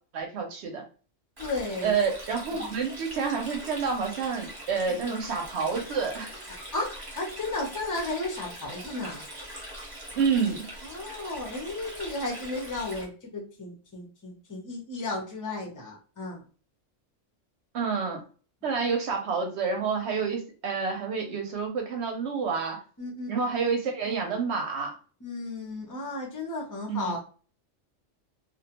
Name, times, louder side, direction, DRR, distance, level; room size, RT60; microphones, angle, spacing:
voice 1, 0.1-0.8 1.8-6.3 10.1-10.7 17.7-18.2 18.6-22.8 23.3-25.0 26.9-27.1, right 5 dB, 65° right, 3 dB, 0.8 m, -28 dB
voice 2, 1.4-1.9 2.5-2.7 5.0-5.2 6.7-9.2 10.8-16.4 23.0-23.5 25.2-27.2, left 2 dB, 25° left, 0 dB, 0.5 m, -34 dB
Stream, 1.4-13.0, right 1 dB, 20° right, 0.9 m, -42 dB
2.4 x 2.2 x 2.8 m, 0.38 s
omnidirectional pair, 1.3 m